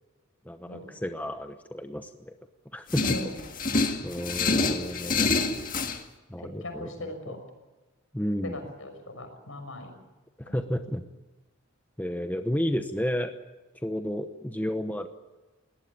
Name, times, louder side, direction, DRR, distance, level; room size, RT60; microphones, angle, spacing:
voice 1, 0.5-2.3 2.7-3.2 4.0-5.3 6.3-7.3 8.1-8.6 10.4-11.0 12.0-13.3 13.8-15.1, equal, 10° left, 7 dB, 0.9 m, -32 dB
sound 1, 2.9-6.0, left 3 dB, 40° left, 1.7 m, -27 dB
voice 2, 3.0-3.4 5.0-5.1 6.4-7.4 8.4-9.9 10.5-10.6, left 1 dB, 70° left, 6 dB, 6.3 m, -38 dB
21.5 x 18.5 x 8.8 m, 1.2 s
head